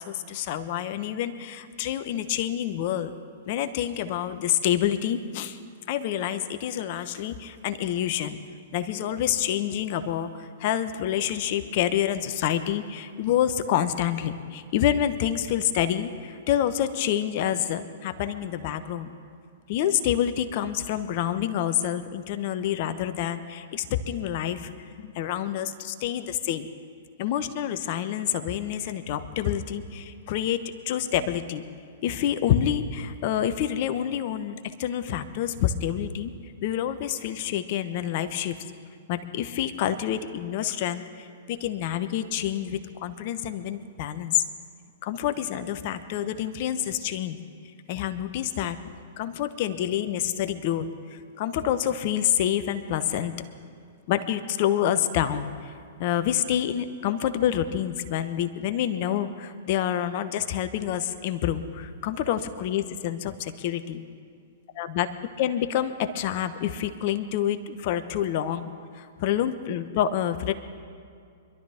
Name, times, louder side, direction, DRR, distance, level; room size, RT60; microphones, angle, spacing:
voice 1, 0.0-3.1 3.5-5.6 5.9-8.4 8.7-19.1 19.7-24.7 25.0-26.7 27.2-31.6 32.0-36.3 36.6-38.6 39.1-44.4 45.0-47.4 47.9-50.9 51.1-53.3 54.1-55.7 56.0-64.0 64.7-65.1 65.4-68.7 68.9-70.5, left 10 dB, 50° left, 10 dB, 1.0 m, -27 dB
25.0 x 12.5 x 3.6 m, 2.3 s
hypercardioid pair, 110°, 0 cm